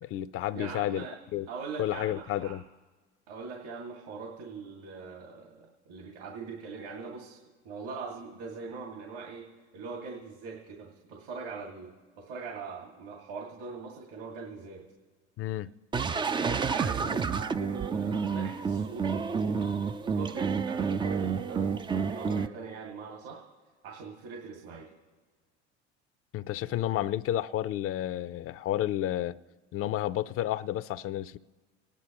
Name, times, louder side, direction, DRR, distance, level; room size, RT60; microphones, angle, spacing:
voice 1, 0.0-1.1 1.3-1.5 1.8-2.6 15.4-15.7 26.3-29.4 29.7-31.4, left 13 dB, 40° left, 0.6 m, -31 dB
voice 2, 0.5-1.2 1.5-2.6 3.3-7.4 7.6-9.5 9.7-11.9 12.1-14.8 16.4-23.4 23.8-24.9, right 4 dB, 65° right, 2.3 m, -42 dB
sound 1, 15.9-22.5, right 5 dB, 15° right, 0.4 m, -29 dB
27.5 x 10.0 x 3.0 m
hypercardioid pair, 75°, 34 cm